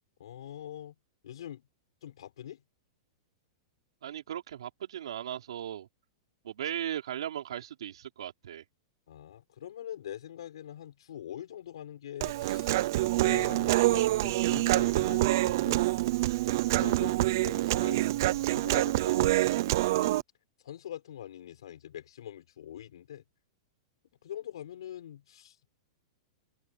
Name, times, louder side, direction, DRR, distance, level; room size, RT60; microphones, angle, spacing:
voice 1, 0.2-0.9 1.2-1.7 2.0-2.6 9.1-15.9 16.6-18.1 18.5-19.3 20.6-23.2 24.2-25.7, left 11 dB, 75° left, 4.7 m, -44 dB
voice 2, 4.0-5.9 6.4-8.6, right 10 dB, 80° right, 4.7 m, -37 dB
Human voice, 12.2-20.2, right 17 dB, 40° right, 0.6 m, -26 dB
supercardioid pair, 180°, 3 cm